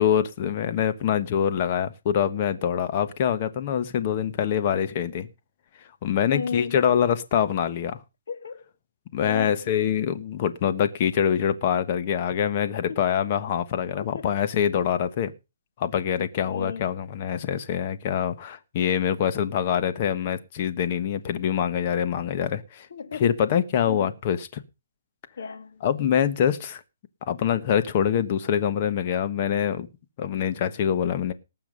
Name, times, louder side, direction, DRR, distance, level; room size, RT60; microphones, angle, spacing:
voice 1, 0.0-5.3 6.0-8.0 9.1-15.3 15.8-22.9 23.2-24.6 25.8-26.8 27.3-29.9 30.2-31.3, left 9 dB, 35° left, 1.3 m, -25 dB
voice 2, 6.3-6.8 8.3-8.6 9.2-9.6 12.9-13.0 14.0-14.3 16.4-16.9 22.9-23.3 23.9-24.1 25.4-25.8, left 5 dB, 70° left, 2.2 m, -34 dB
19.0 x 7.1 x 5.3 m
hypercardioid pair, 160°, 0 cm